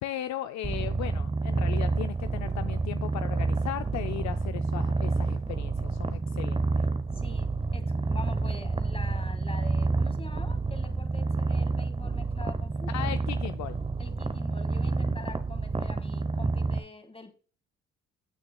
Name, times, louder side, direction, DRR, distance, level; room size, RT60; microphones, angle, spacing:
voice 1, 0.0-6.8 12.9-13.8, left 13 dB, 60° left, 0.5 m, -37 dB
Purr, 0.6-16.8, right 3 dB, 20° right, 0.8 m, -29 dB
voice 2, 7.1-13.1 14.0-17.4, left 3 dB, 20° left, 2.0 m, -45 dB
17.0 x 6.4 x 2.3 m
supercardioid pair, 60°, 31 cm